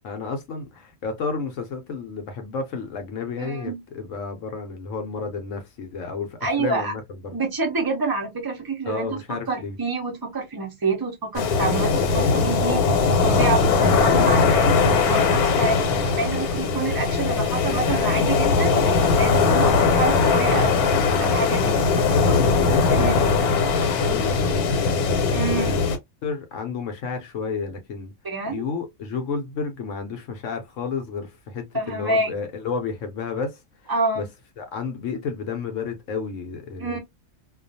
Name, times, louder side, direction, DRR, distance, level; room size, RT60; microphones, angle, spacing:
voice 1, 0.0-7.4 8.9-9.8 21.9-23.4 23.8-25.8 26.2-28.1 28.5-34.3 34.6-37.0, left 5 dB, 65° left, 0.9 m, -32 dB
voice 2, 3.4-3.8 6.4-6.9 7.3-12.8 13.2-15.9 16.1-20.9 21.2-21.8 22.9-23.2 25.3-25.8 28.2-28.6 31.7-32.4 33.9-34.3 36.8-37.0, right 3 dB, 35° right, 0.3 m, -27 dB
sound 1, 11.4-26.0, left 4 dB, 80° left, 1.2 m, -20 dB
2.4 x 2.3 x 2.6 m
omnidirectional pair, 1.5 m